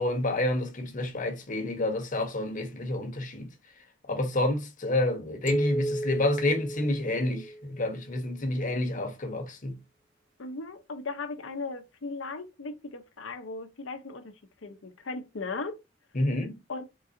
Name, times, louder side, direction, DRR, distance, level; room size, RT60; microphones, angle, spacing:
voice 1, 0.0-3.5 4.1-9.8 16.1-16.6, left 1 dB, 45° left, 1.0 m, -29 dB
sound 1, 5.5-7.9, right 1 dB, 50° right, 2.1 m, -33 dB
voice 2, 10.4-14.3 14.6-15.8 16.7-16.8, left 3 dB, 85° left, 0.7 m, -37 dB
3.9 x 3.8 x 2.6 m
head